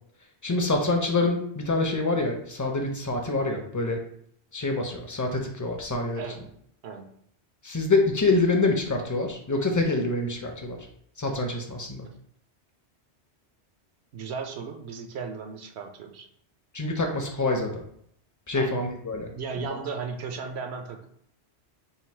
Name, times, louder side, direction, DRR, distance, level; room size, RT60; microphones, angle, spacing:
voice 1, 0.4-4.0 4.5-6.2 7.6-10.8 11.2-12.1 16.7-17.8 18.5-19.3, left 2 dB, 25° left, 2 dB, 0.5 m, -26 dB
voice 2, 14.1-16.3 18.5-18.8 19.3-21.1, right 5 dB, 75° right, 5 dB, 0.9 m, -36 dB
3.8 x 2.4 x 4.4 m, 0.68 s
omnidirectional pair, 1.1 m